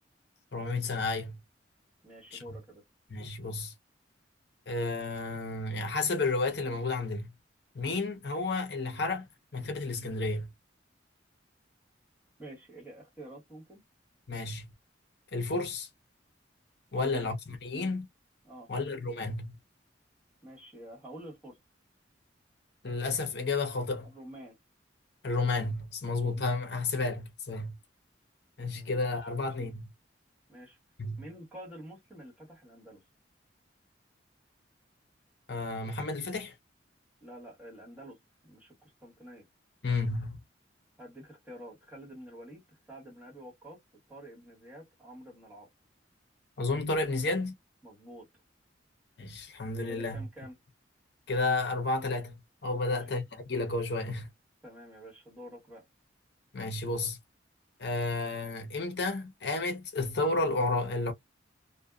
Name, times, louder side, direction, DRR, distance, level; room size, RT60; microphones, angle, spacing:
voice 1, 0.5-1.4 2.3-2.6 3.1-3.7 4.7-7.3 7.7-10.5 14.3-14.6 15.3-15.9 16.9-18.1 18.7-19.5 22.8-24.1 25.2-27.8 28.6-29.8 31.0-31.2 35.5-36.5 39.8-40.4 46.6-47.6 49.2-50.3 51.3-54.3 56.5-57.2 57.8-61.1, left 3 dB, 60° left, 0.8 m, -32 dB
voice 2, 2.0-2.8 12.4-13.8 16.9-17.2 18.4-18.7 20.4-21.6 24.0-24.6 26.3-26.6 28.6-29.3 30.5-30.8 31.2-33.0 37.2-39.4 41.0-45.7 47.8-48.3 49.9-50.6 52.8-53.1 54.6-55.8, right 1 dB, 10° right, 1.5 m, -49 dB
2.6 x 2.1 x 2.3 m
head